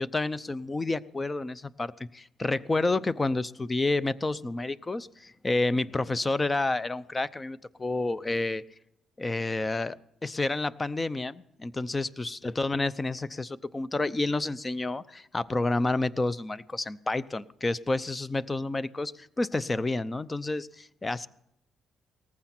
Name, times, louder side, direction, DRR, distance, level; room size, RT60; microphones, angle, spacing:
voice 1, 0.0-8.6 9.2-10.0 10.2-21.3, left 2 dB, 25° left, 18 dB, 0.6 m, -29 dB
18.5 x 15.0 x 4.4 m, 0.78 s
cardioid pair, 90°, 0 cm